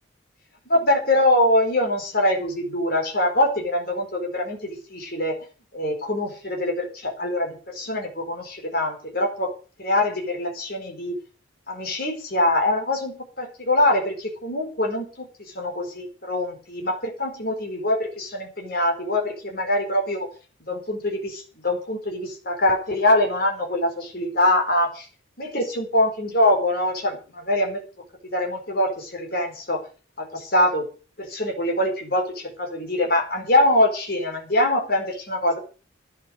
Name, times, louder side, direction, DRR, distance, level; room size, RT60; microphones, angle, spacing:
voice 1, 0.7-5.4 5.7-9.5 9.8-11.2 11.7-20.3 20.7-25.1 25.4-27.8 28.3-29.8 30.2-30.8 31.2-35.6, left 1 dB, 50° left, 2 dB, 4.6 m, -23 dB
12.5 x 10.5 x 6.5 m, 0.37 s
head